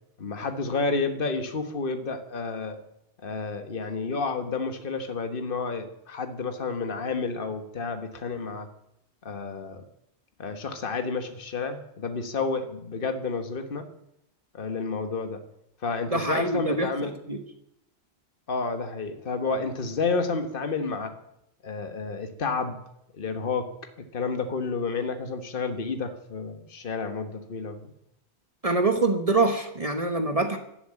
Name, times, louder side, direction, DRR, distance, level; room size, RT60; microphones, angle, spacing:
voice 1, 0.2-2.8 3.2-8.7 9.2-9.8 10.4-13.8 14.5-15.4 15.8-17.1 18.5-21.1 21.6-22.8 23.1-23.7 24.1-27.8, left 4 dB, 55° left, 7 dB, 1.6 m, -30 dB
voice 2, 16.1-17.4 28.6-30.6, right 3 dB, 35° right, 6 dB, 1.3 m, -25 dB
13.0 x 12.0 x 8.9 m, 0.79 s
omnidirectional pair, 1.1 m